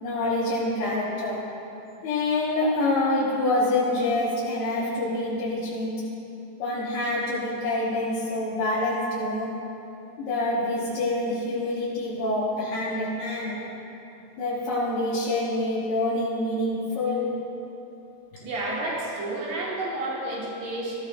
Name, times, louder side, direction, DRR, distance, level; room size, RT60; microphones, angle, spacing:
voice 1, 0.0-1.4 2.0-6.0 6.6-9.5 10.2-13.7 14.4-17.3, left 2 dB, 75° left, -10 dB, 3.6 m, -26 dB
voice 2, 18.4-21.0, right 2 dB, 85° right, -7 dB, 4.6 m, -30 dB
19.0 x 14.5 x 2.6 m, 2.9 s
omnidirectional pair, 4.5 m